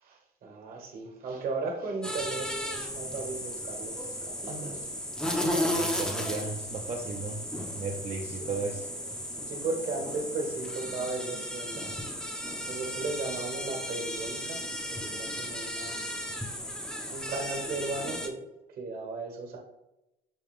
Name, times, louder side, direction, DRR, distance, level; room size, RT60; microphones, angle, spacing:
voice 1, 0.0-4.8 8.4-8.6 9.5-11.9 12.7-14.6 14.9-15.9 17.1-18.4 18.8-19.6, right 3 dB, 60° right, 1 dB, 1.3 m, -36 dB
sound 1, 2.0-18.3, left 1 dB, 5° left, 0.6 m, -35 dB
voice 2, 4.5-4.8 5.4-8.9, right 4 dB, 40° right, 0 dB, 0.6 m, -36 dB
6.2 x 2.3 x 3.5 m, 0.91 s
cardioid pair, 110°, 17 cm